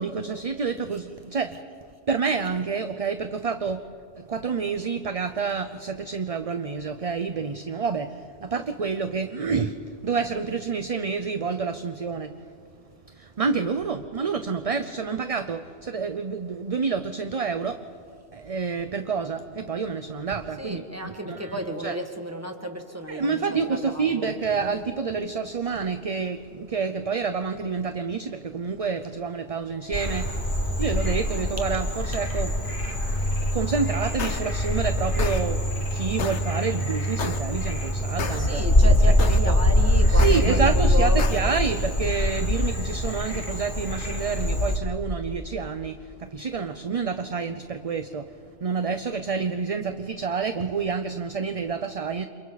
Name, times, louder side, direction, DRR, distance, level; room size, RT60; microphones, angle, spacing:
voice 1, 0.0-1.6 2.1-3.8 4.1-9.8 10.0-12.4 13.1-17.8 18.3-22.0 23.1-32.5 32.8-33.2 33.5-38.6 39.3-39.6 40.1-48.3 48.6-52.3, right 5 dB, 40° right, 9 dB, 0.7 m, -28 dB
voice 2, 20.6-24.3 38.3-41.8, right 1 dB, 15° right, 4 dB, 1.9 m, -33 dB
Frog, 29.9-44.8, left 1 dB, 50° left, 2.5 m, -23 dB
sound 1, 34.2-34.4 35.2-35.4 36.2-36.4 37.2-37.4 38.2-38.4 39.2-39.4 40.2-40.4 41.2-41.4, left 6 dB, 85° left, 1.3 m, -30 dB
29.5 x 27.5 x 4.1 m, 2.4 s
omnidirectional pair, 1.1 m